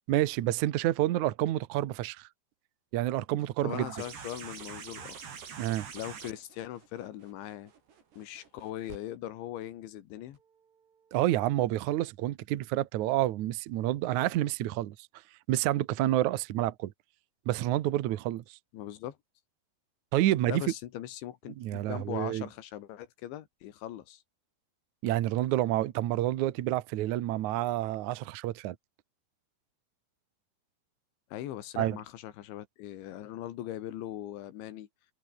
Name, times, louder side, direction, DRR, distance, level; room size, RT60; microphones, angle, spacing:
voice 1, 0.1-2.3 2.9-3.9 5.6-5.9 11.1-14.9 15.5-16.9 17.4-18.6 20.1-20.6 21.6-22.4 25.0-28.7 31.8-32.0, right 14 dB, 85° right, 1.7 m, -29 dB
voice 2, 3.6-5.3 5.9-7.7 8.2-10.4 18.7-19.2 20.5-24.2 31.3-34.9, left 12 dB, 85° left, 4.1 m, -40 dB
sound 1, 3.7-9.0 10.3-10.4, right 6 dB, 70° right, 6.6 m, -45 dB
omnidirectional pair, 5.2 m